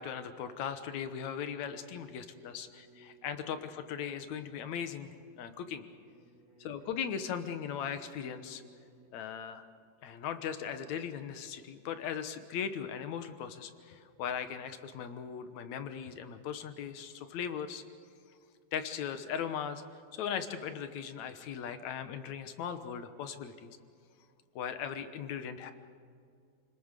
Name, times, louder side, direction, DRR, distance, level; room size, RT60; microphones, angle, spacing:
voice 1, 0.0-5.8 6.6-8.6 9.1-9.7 10.0-17.8 18.7-23.8 24.6-25.7, left 8 dB, 65° left, 10 dB, 2.1 m, -38 dB
sound 1, 1.2-9.1, right 2 dB, 25° right, 3.2 m, -61 dB
29.0 x 20.0 x 6.7 m, 2.3 s
omnidirectional pair, 4.1 m